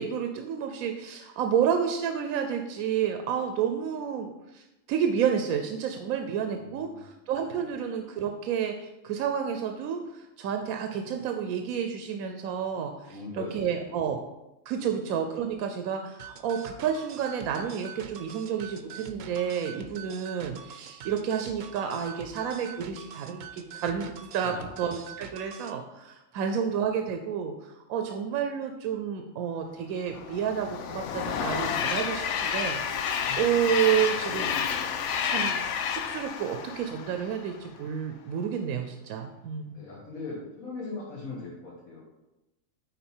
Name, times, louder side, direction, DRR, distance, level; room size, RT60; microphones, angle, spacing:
voice 1, 0.0-14.2 14.7-39.8, right 8 dB, 85° right, 5 dB, 1.0 m, -30 dB
voice 2, 6.5-7.0 7.5-7.6 13.1-13.6 13.9-14.0 24.4-24.8 26.6-26.7 33.2-33.7 39.7-42.0, left 3 dB, 90° left, -6 dB, 1.9 m, -40 dB
sound 1, 16.2-25.8, right 8 dB, 60° right, 0.7 m, -44 dB
Train, 30.1-37.5, left 7 dB, 65° left, 0.9 m, -30 dB
9.3 x 4.0 x 4.4 m, 0.98 s
omnidirectional pair, 1.4 m